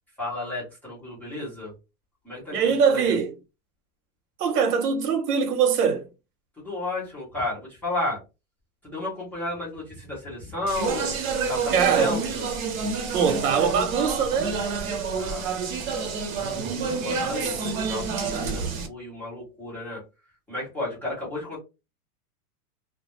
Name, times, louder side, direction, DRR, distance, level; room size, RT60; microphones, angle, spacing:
voice 1, 0.2-1.7 2.2-2.6 2.9-3.2 6.6-8.2 8.8-11.1 11.5-12.4 15.2-15.5 16.8-20.0 20.5-21.6, left 2 dB, 5° left, 0.5 m, -33 dB
voice 2, 2.5-3.3 4.4-6.1 11.7-12.2 13.1-15.0 17.2-17.6, right 6 dB, 90° right, 0.9 m, -23 dB
Speech, 10.7-18.9, right 5 dB, 60° right, 0.8 m, -28 dB
2.3 x 2.0 x 2.9 m
supercardioid pair, 150°, 45 cm